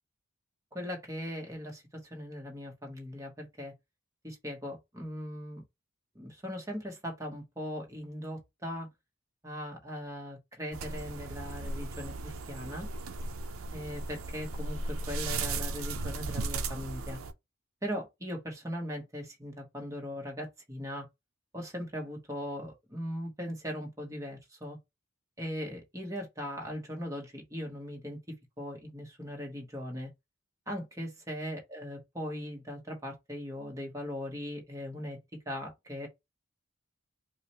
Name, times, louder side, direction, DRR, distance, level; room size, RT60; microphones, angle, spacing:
voice 1, 0.7-3.7 4.2-5.6 6.1-8.9 9.4-12.9 13.7-17.2 17.8-21.1 21.5-24.8 25.4-30.1 30.7-35.2 35.5-36.1, equal, 15° right, 1.0 m, -39 dB
sound 1, 10.7-17.3, right 3 dB, 85° right, 0.5 m, -36 dB
4.8 x 2.1 x 2.8 m
head